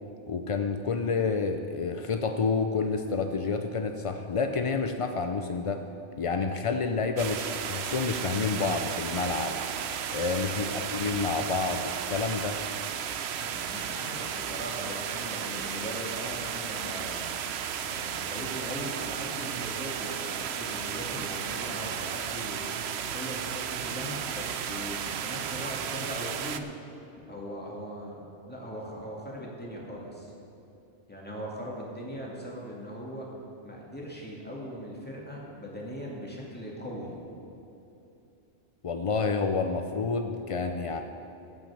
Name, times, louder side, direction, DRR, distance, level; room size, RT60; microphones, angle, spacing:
voice 1, 0.3-5.8 6.2-9.6 10.1-12.6 38.8-41.0, left 4 dB, 60° left, 6 dB, 0.3 m, -29 dB
sound 1, 7.2-26.6, right 8 dB, 65° right, 0.8 m, -34 dB
voice 2, 10.2-10.9 13.4-17.3 17.8-22.6 23.1-26.7 27.3-30.3 31.1-33.3 33.6-37.3, equal, 10° left, -4 dB, 2.2 m, -39 dB
16.0 x 6.0 x 7.1 m, 2.9 s
omnidirectional pair, 1.3 m